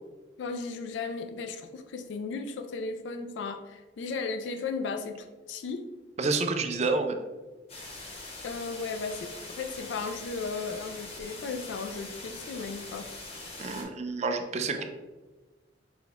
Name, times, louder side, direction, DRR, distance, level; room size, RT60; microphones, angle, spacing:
voice 1, 0.4-5.8 8.4-13.1, left 4 dB, 75° left, 6 dB, 0.3 m, -35 dB
voice 2, 6.2-7.2 13.6-14.9, right 3 dB, 35° right, 6 dB, 0.4 m, -29 dB
sound 1, 7.7-13.8, left 2 dB, 35° left, 0.9 m, -43 dB
6.0 x 2.2 x 3.5 m, 1.2 s
head